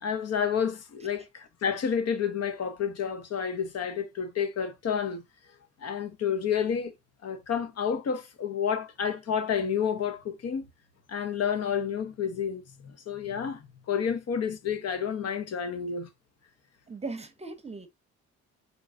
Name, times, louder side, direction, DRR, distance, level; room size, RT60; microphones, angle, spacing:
voice 1, 0.0-5.2 5.8-6.9 7.2-10.6 11.1-16.1, left 7 dB, 55° left, 1.0 m, -30 dB
voice 2, 16.9-17.9, right 3 dB, 20° right, 0.8 m, -38 dB
4.5 x 4.0 x 2.5 m
cardioid pair, 90°, 30 cm